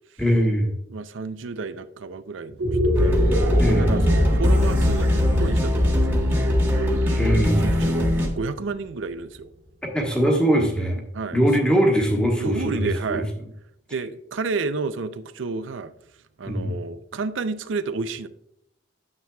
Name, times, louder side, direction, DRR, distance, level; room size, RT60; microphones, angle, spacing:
voice 1, 0.2-0.7 3.6-3.9 7.2-7.7 9.9-11.0 11.3-13.2 16.4-16.7, equal, 5° left, 0 dB, 1.4 m, -21 dB
voice 2, 0.9-3.2 3.8-9.5 11.1-11.7 12.4-13.3 13.9-15.9 16.4-18.3, right 4 dB, 85° right, 12 dB, 0.5 m, -31 dB
sound 1, 2.5-8.9, equal, 65° right, 1.3 m, -26 dB
sound 2, 2.9-8.3, left 1 dB, 10° right, 1.4 m, -21 dB
9.7 x 7.5 x 2.3 m, 0.76 s
head